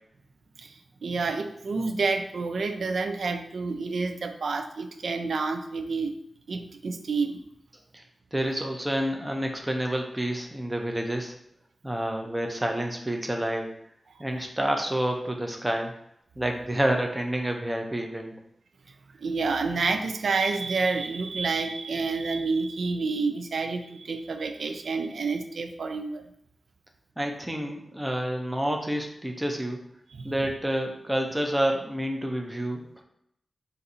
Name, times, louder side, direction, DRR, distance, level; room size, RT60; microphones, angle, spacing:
voice 1, 0.6-6.2 6.5-7.4 14.1-14.3 18.9-26.2 30.1-30.3, right 4 dB, 70° right, 7 dB, 0.4 m, -29 dB
voice 2, 8.3-11.3 11.8-13.7 14.2-15.9 16.4-18.3 27.2-29.8 30.2-33.0, right 1 dB, 10° right, 2 dB, 0.5 m, -29 dB
4.0 x 2.6 x 4.1 m, 0.72 s
wide cardioid pair, 150°, 0 cm